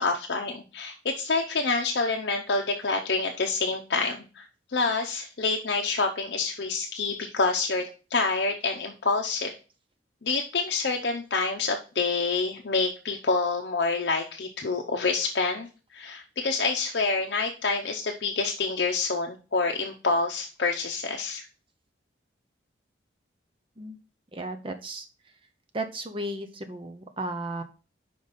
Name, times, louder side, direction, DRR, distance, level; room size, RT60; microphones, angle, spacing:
voice 1, 0.0-4.4 4.7-9.5 10.2-21.4, left 3 dB, 65° left, 2 dB, 0.7 m, -27 dB
voice 2, 24.3-25.1 25.7-27.6, right 1 dB, 30° right, 7 dB, 0.6 m, -34 dB
5.2 x 5.1 x 4.0 m, 0.34 s
head